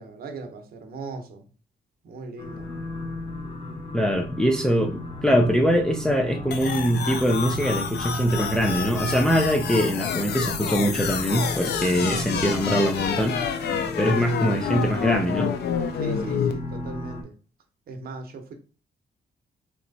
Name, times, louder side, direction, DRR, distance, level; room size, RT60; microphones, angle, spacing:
voice 1, 0.0-1.5 2.0-2.7 15.9-17.3 17.9-18.5, right 3 dB, 65° right, 0.9 m, -38 dB
sound 1, 2.4-17.2, left 1 dB, 30° left, 0.8 m, -35 dB
voice 2, 3.9-13.7 14.0-15.5, equal, 5° left, 0.4 m, -23 dB
sound 2, 6.5-16.5, left 7 dB, 80° left, 0.5 m, -29 dB
3.3 x 3.0 x 4.0 m
wide cardioid pair, 175°, 17 cm